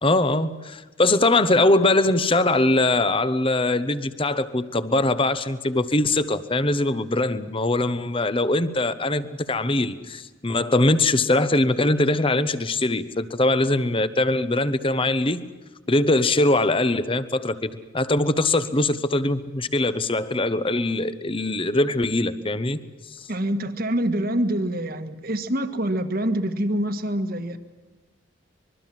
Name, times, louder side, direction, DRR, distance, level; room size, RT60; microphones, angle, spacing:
voice 1, 0.0-15.4 15.9-22.8 23.2-23.3, left 2 dB, 25° left, 13 dB, 1.0 m, -22 dB
voice 2, 23.3-27.6, right 1 dB, 45° right, 9 dB, 1.6 m, -25 dB
25.5 x 22.5 x 7.7 m, 1.2 s
head